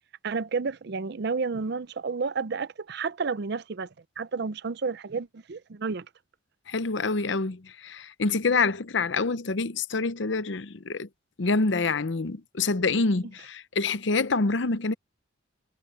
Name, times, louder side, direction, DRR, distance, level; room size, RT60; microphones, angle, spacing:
voice 1, 0.2-3.9 4.2-6.1, right 4 dB, 60° right, 0.5 m, -31 dB
voice 2, 6.7-11.1 11.4-14.9, left 3 dB, 65° left, 0.8 m, -26 dB
head